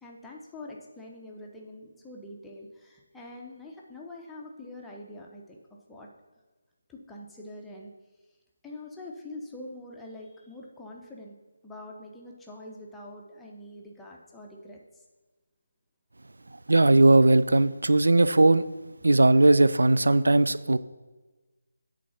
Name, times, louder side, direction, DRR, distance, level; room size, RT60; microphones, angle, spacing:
voice 1, 0.0-5.6 5.9-6.1 6.9-7.9 8.6-11.3 11.6-15.0, left 1 dB, 5° left, -3 dB, 0.7 m, -44 dB
voice 2, 16.7-18.6 19.0-20.8, right 2 dB, 65° right, 15 dB, 0.3 m, -19 dB
8.5 x 3.9 x 5.8 m, 1.2 s
figure-of-eight pair, 155°, 0 cm